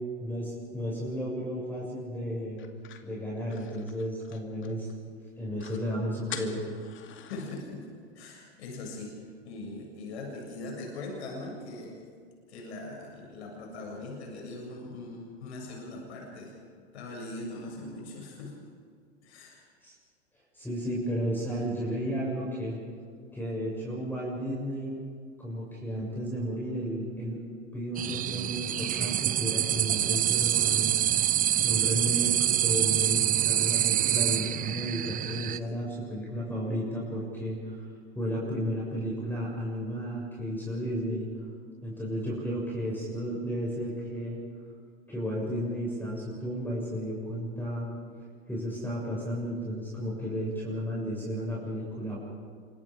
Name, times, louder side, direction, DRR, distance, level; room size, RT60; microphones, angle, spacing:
voice 1, 0.2-2.6 3.0-4.9 5.4-6.8 19.8-19.9 20.5-22.8 23.3-25.0 25.4-27.4 27.7-30.9 31.6-37.8 38.1-41.3 41.8-44.4 45.1-47.9 48.5-52.2, equal, 5° left, -4 dB, 7.1 m, -33 dB
sound 1, 2.6-5.0 5.3-5.4 5.6-5.8 6.3-7.6, left 9 dB, 35° left, 2.4 m, -45 dB
voice 2, 7.3-7.9 8.2-9.1 9.4-12.0 12.5-18.6 19.2-19.7, left 2 dB, 75° left, -1 dB, 7.2 m, -41 dB
sound 2, 27.9-35.6, right 12 dB, 25° right, 0.6 m, -26 dB
27.5 x 24.5 x 5.1 m, 2.1 s
hypercardioid pair, 105°, 33 cm